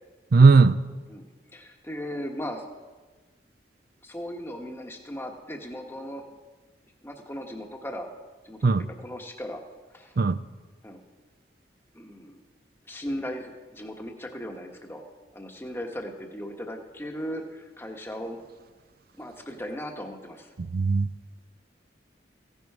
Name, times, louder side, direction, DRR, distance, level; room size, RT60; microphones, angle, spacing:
voice 1, 0.3-0.8 8.6-8.8 10.2-10.4 20.6-21.1, right 4 dB, 55° right, 15 dB, 0.5 m, -17 dB
voice 2, 1.5-2.6 4.0-6.2 7.0-8.1 8.4-8.7 9.0-9.6 9.9-10.1 10.8-11.0 11.9-12.4 12.8-15.0 15.3-18.4 19.2-20.5, equal, 15° left, 3 dB, 1.2 m, -37 dB
16.0 x 10.5 x 4.7 m, 1.3 s
head